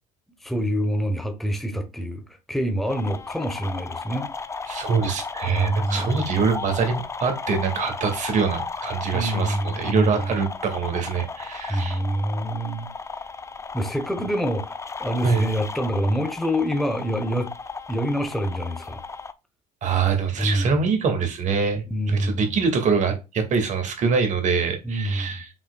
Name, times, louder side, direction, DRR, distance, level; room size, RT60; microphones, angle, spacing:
voice 1, 0.4-4.3 5.5-6.2 9.1-10.4 11.7-12.9 13.7-14.7 15.0-17.5 17.9-19.0 20.4-20.7 21.9-22.6 24.8-25.4, equal, ahead, 1.1 m, -26 dB
sound 1, 2.9-19.3, left 4 dB, 15° left, 0.5 m, -35 dB
voice 2, 4.7-12.0 14.2-14.3 15.2-15.5 19.8-25.5, right 5 dB, 50° right, 2.0 m, -24 dB
5.9 x 3.9 x 2.3 m
supercardioid pair, 90°, 16 cm